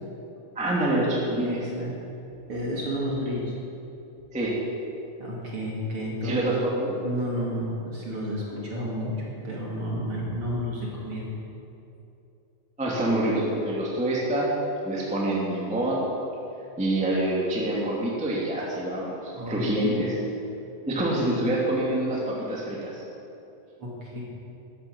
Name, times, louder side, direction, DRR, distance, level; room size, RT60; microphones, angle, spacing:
voice 1, 0.5-1.6 4.3-4.5 6.2-6.9 12.8-14.5 14.8-16.0 16.8-20.2 20.9-23.0, right 1 dB, 5° right, -5 dB, 1.6 m, -26 dB
voice 2, 1.4-2.0 2.5-3.5 5.2-6.5 7.0-9.1 9.4-11.3 19.3-20.1 23.8-24.2, equal, 45° right, -4 dB, 2.7 m, -31 dB
13.5 x 11.0 x 6.1 m, 2.8 s
omnidirectional pair, 4.1 m